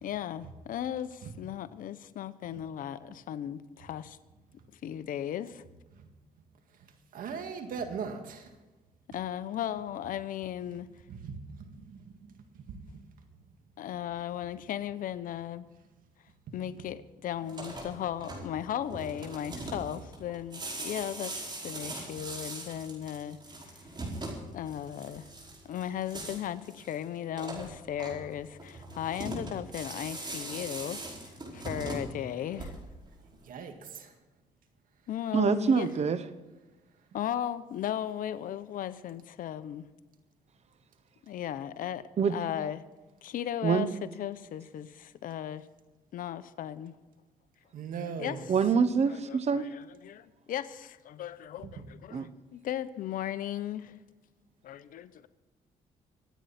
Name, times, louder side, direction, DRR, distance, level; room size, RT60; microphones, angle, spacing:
voice 1, 0.0-4.2 4.8-5.6 9.1-10.9 13.8-15.7 16.5-21.3 21.6-23.4 24.5-25.3 25.6-32.7 35.1-35.9 37.1-39.9 41.2-42.8 43.2-43.9 44.2-45.7 46.1-46.9 48.2-48.5 49.1-53.9 54.6-55.3, left 10 dB, 70° left, 0.8 m, -36 dB
voice 2, 7.1-8.5 11.1-12.0 12.7-13.1 33.5-34.1 47.7-48.4, right 6 dB, 70° right, 1.9 m, -39 dB
sound 1, 17.4-33.1, right 2 dB, 30° right, 5.2 m, -41 dB
voice 3, 35.3-36.2 42.2-42.4 43.6-43.9 48.5-49.7 52.1-52.3, right 6 dB, 45° right, 1.0 m, -25 dB
25.0 x 9.2 x 4.3 m
cardioid pair, 90°, 15 cm